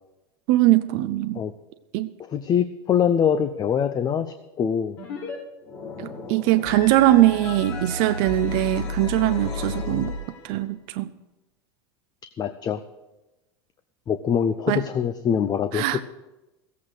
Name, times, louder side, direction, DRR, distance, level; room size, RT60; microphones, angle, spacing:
voice 1, 0.5-1.4 1.9-2.1 6.0-10.1 10.4-11.1 14.7-14.8 15.7-16.0, right 15 dB, 60° right, 0.6 m, -21 dB
voice 2, 2.2-5.0 12.4-12.8 14.1-16.0, left 8 dB, 30° left, 0.7 m, -24 dB
sound 1, 5.0-5.3 5.6-10.6, left 3 dB, 75° left, 5.3 m, -33 dB
15.0 x 8.4 x 6.5 m
hypercardioid pair, 105°, 13 cm